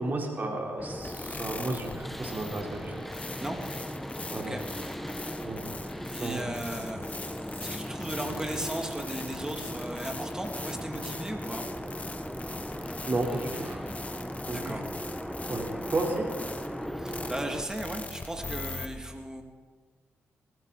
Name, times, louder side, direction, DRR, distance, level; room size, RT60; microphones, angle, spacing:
voice 1, 0.0-3.1 4.3-4.6 5.4-5.7 6.2-6.5 13.1-13.8 14.5-14.8 15.5-16.3, right 2 dB, 40° right, 0 dB, 4.1 m, -33 dB
sound 1, 0.8-17.6, equal, 5° left, 1.1 m, -38 dB
sound 2, 1.0-18.9, left 3 dB, 30° left, 1.4 m, -42 dB
voice 2, 6.1-7.3 7.5-11.7 14.5-14.9 17.0-19.4, right 1 dB, 15° right, 2 dB, 2.7 m, -36 dB
21.0 x 15.0 x 4.2 m, 1.5 s
cardioid pair, 75°, 5 cm